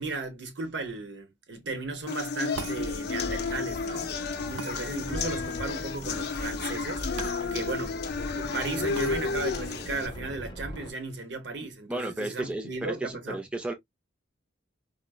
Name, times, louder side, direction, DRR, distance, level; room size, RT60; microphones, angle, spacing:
voice 1, 0.0-8.0 8.3-13.4, right 3 dB, 65° right, 0.9 m, -36 dB
sound 1, 2.1-10.1, left 5 dB, 55° left, 0.5 m, -32 dB
sound 2, 2.5-2.8 4.6-4.8 7.2-7.4 7.7-7.8 8.9-9.1, right 7 dB, 85° right, 0.4 m, -39 dB
sound 3, 2.6-10.9, equal, 25° left, 0.8 m, -40 dB
voice 2, 11.9-13.7, right 2 dB, 5° right, 0.4 m, -34 dB
4.7 x 2.1 x 2.2 m
head